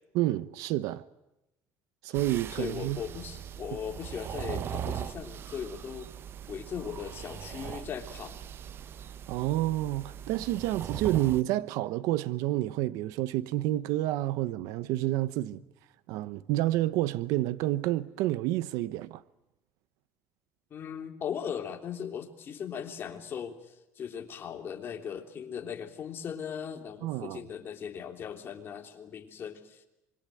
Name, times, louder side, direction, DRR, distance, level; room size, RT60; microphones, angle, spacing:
voice 1, 0.1-1.0 2.0-3.0 9.3-15.6 16.1-19.2 27.0-27.4, right 15 dB, 80° right, 0.9 m, -29 dB
sound 1, 2.1-11.4, right 9 dB, 40° right, 0.9 m, -40 dB
voice 2, 2.5-6.1 6.5-8.4 20.7-23.6 24.0-29.8, left 8 dB, 40° left, 3.3 m, -38 dB
26.0 x 23.0 x 9.2 m
cardioid pair, 130°, 6 cm